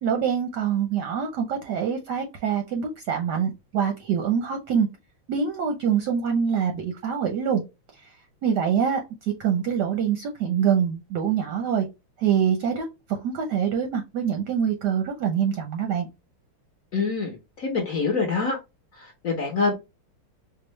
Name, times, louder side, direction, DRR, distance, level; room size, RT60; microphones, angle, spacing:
voice 1, 0.0-4.9 5.3-7.6 8.4-11.8 12.2-16.1, right 7 dB, 65° right, 1.1 m, -25 dB
voice 2, 16.9-18.6 19.2-19.7, left 4 dB, 50° left, 1.0 m, -25 dB
4.5 x 2.4 x 3.0 m
omnidirectional pair, 2.4 m